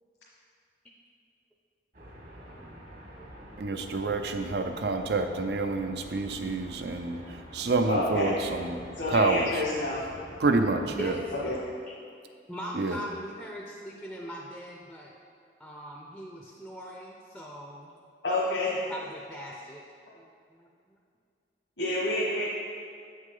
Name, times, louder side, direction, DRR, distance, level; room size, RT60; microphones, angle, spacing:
sound 1, 1.9-11.6, equal, 50° right, 1.4 m, -47 dB
voice 1, 2.4-3.6 8.8-8.9 11.0-11.3 11.9-12.0 12.5-15.1 15.6-17.9 18.7-19.8 20.1-21.0, equal, ahead, -2 dB, 0.5 m, -42 dB
voice 2, 3.6-8.8 9.1-9.6 10.4-11.2 12.7-13.0, right 3 dB, 65° right, 7 dB, 0.6 m, -28 dB
voice 3, 7.9-8.3 9.0-10.0 11.4-11.5 18.2-18.7 21.8-22.4, left 2 dB, 90° left, -8 dB, 1.5 m, -28 dB
8.4 x 6.4 x 3.8 m, 2.3 s
head